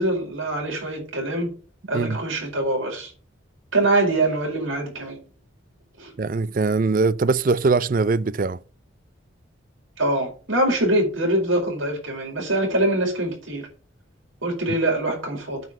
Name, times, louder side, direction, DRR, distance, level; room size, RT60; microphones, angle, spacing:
voice 1, 0.0-1.5 1.9-3.1 3.7-5.2 6.0-6.1 10.0-13.7 14.4-15.6, right 1 dB, 85° right, 4.8 m, -24 dB
voice 2, 6.2-8.6, right 4 dB, 40° right, 0.4 m, -21 dB
9.3 x 5.2 x 7.6 m
head